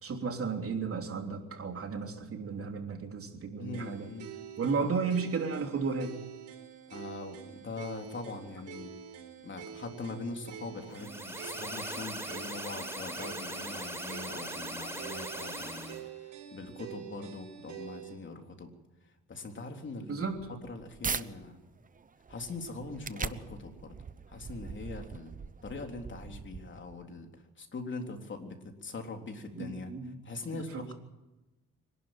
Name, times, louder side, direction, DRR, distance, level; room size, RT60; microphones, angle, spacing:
voice 1, 0.0-4.1 4.6-6.2 20.1-20.4 29.5-30.1 30.5-30.9, right 5 dB, 50° right, 4 dB, 3.2 m, -34 dB
voice 2, 3.6-4.3 6.9-8.9 9.4-18.7 19.3-20.3 20.7-21.6 22.3-23.9 24.3-25.3 25.6-29.9 30.2-30.9, left 3 dB, 40° left, 3 dB, 3.7 m, -42 dB
sound 1, 3.7-18.2, right 8 dB, 80° right, 5.0 m, -47 dB
sound 2, 10.9-16.0, right 1 dB, 10° right, 4.6 m, -40 dB
sound 3, 20.3-21.3 21.8-27.1, right 5 dB, 25° right, 0.9 m, -41 dB
25.0 x 12.0 x 9.0 m, 1.0 s
cardioid pair, 90°, 30 cm